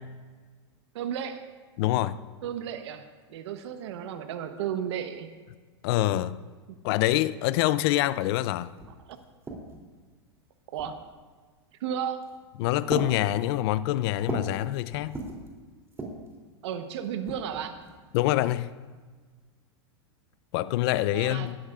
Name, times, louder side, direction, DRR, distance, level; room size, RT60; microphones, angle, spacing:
voice 1, 0.9-1.5 2.4-5.3 9.0-9.2 10.7-11.0 11.8-12.2 16.6-17.8 21.1-21.5, right 9 dB, 70° right, 1.0 m, -33 dB
voice 2, 1.8-2.2 5.8-6.4 6.8-8.7 12.6-15.2 18.1-18.7 20.5-21.6, left 15 dB, 60° left, 0.6 m, -25 dB
sound 1, 8.8-9.9 10.7-11.2 12.1-12.4 12.9-14.6 14.9-15.5 15.9-16.3 17.0-18.0, right 2 dB, 15° right, 3.1 m, -38 dB
27.5 x 12.5 x 2.5 m
hypercardioid pair, 110°, 15 cm